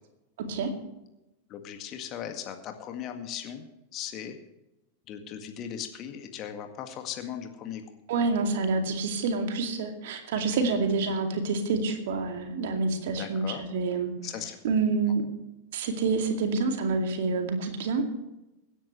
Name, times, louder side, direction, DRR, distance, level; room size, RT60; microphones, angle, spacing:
voice 1, 1.5-3.7 3.9-4.4 5.1-7.8 10.3-10.5 13.0-13.6 14.2-14.6, left 9 dB, 35° left, 6 dB, 1.9 m, -38 dB
voice 2, 8.1-14.1 14.6-15.2 15.7-18.0, right 4 dB, 55° right, 5 dB, 2.4 m, -27 dB
25.0 x 10.0 x 3.2 m, 0.94 s
figure-of-eight pair, 90°, 0 cm